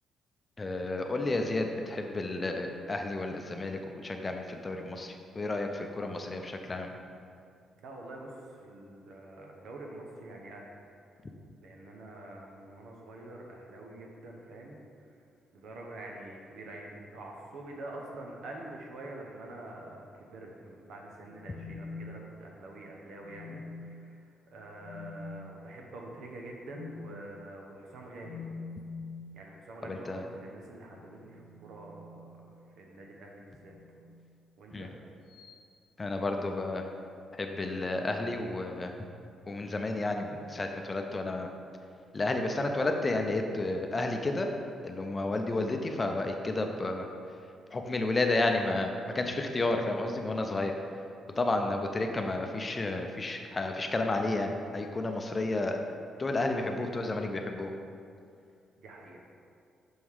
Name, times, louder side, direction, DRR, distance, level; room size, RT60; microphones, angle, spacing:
voice 1, 0.6-6.9 29.9-30.2 34.7-34.9 36.0-36.9 37.4-38.9 39.5-41.5 42.1-44.5 44.8-47.1 47.7-50.7 51.4-55.8 56.2-57.7, left 2 dB, 25° left, 4 dB, 0.6 m, -31 dB
voice 2, 7.8-8.3 8.6-10.7 11.6-14.8 15.5-24.2 24.5-28.4 29.3-32.3 32.8-33.7 34.6-34.9 58.8-59.2, right 2 dB, 75° right, 0 dB, 1.0 m, -46 dB
sound 1, 21.3-22.6 23.2-24.0 24.8-25.3 26.7-27.1 28.2-29.2 30.7-32.6 33.6-34.1 35.3-35.6, left 4 dB, 75° left, 0.5 m, -45 dB
6.3 x 3.6 x 4.7 m, 2.4 s
cardioid pair, 90°, 0 cm